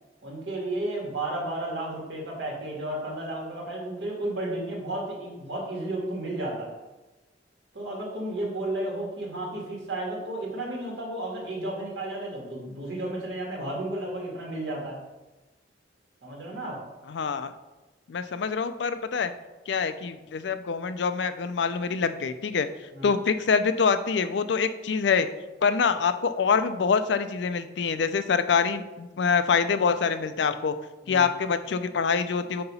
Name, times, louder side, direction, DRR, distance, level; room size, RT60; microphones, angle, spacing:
voice 1, 0.2-6.7 7.7-15.0 16.2-16.8 22.9-23.1 31.0-31.3, right 1 dB, 75° right, -3 dB, 2.0 m, -33 dB
voice 2, 17.1-17.5 18.1-19.3 19.7-22.7 23.0-25.3 25.6-30.7 31.1-32.6, left 5 dB, 75° left, 11 dB, 0.4 m, -25 dB
7.8 x 2.9 x 5.5 m, 1.1 s
head